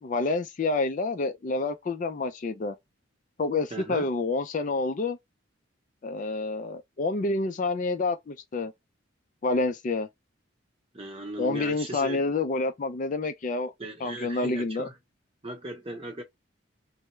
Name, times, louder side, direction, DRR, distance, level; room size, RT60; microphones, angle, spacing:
voice 1, 0.0-2.7 3.4-5.2 6.0-8.7 9.4-10.1 11.4-13.7 14.0-14.9, left 3 dB, 40° left, 0.3 m, -28 dB
voice 2, 3.7-4.1 10.9-12.2 13.8-15.0 15.4-16.2, right 1 dB, 30° right, 0.8 m, -37 dB
3.4 x 2.0 x 3.1 m
head